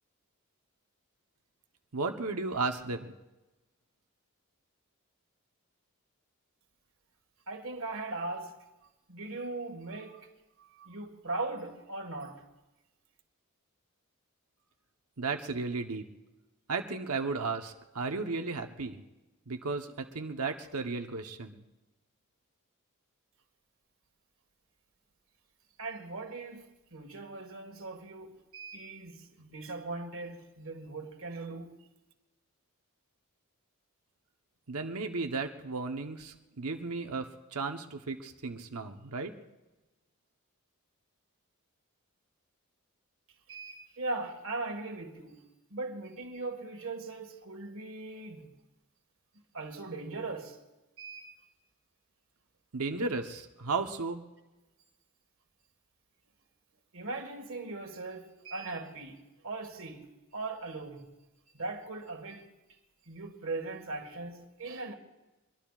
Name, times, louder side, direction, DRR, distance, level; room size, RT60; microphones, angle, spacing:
voice 1, 1.9-3.1 15.2-16.1 16.7-19.0 19.5-21.6 34.7-39.3 52.7-54.2, right 4 dB, 85° right, 1.1 m, -34 dB
voice 2, 7.5-8.6 9.1-10.3 10.6-12.4 25.8-31.8 43.5-45.4 45.7-48.5 49.5-50.6 51.0-51.4 56.9-61.1 61.5-62.5 63.1-64.9, right 3 dB, 60° right, 1.8 m, -39 dB
25.0 x 22.5 x 2.5 m
head